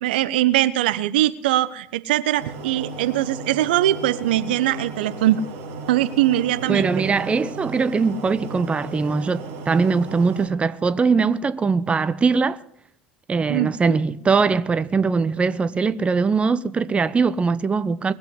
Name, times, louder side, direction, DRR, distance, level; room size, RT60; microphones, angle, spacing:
voice 1, 0.0-5.4 5.9-6.9 13.5-13.7, right 13 dB, 65° right, 0.8 m, -21 dB
sound 1, 2.4-10.5, right 3 dB, 50° right, 4.9 m, -36 dB
voice 2, 6.7-12.6 13.3-18.1, right 5 dB, 20° right, 0.8 m, -21 dB
21.0 x 8.2 x 8.2 m
figure-of-eight pair, 70°, 6 cm